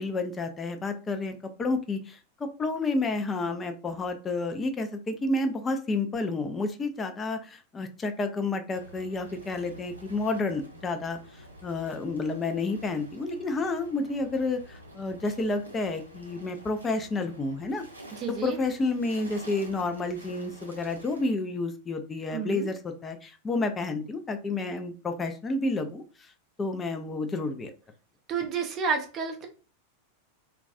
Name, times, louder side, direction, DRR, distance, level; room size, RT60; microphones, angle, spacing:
voice 1, 0.0-11.2 11.6-17.8 18.4-26.3 26.6-27.7, left 3 dB, 20° left, 7 dB, 0.4 m, -30 dB
sound 1, 8.7-21.3, equal, 85° right, 0.5 m, -48 dB
voice 2, 18.1-18.6 22.3-22.7 28.3-29.5, right 5 dB, 30° right, 4 dB, 0.5 m, -30 dB
2.3 x 2.2 x 2.5 m, 0.36 s
figure-of-eight pair, 90°, 0 cm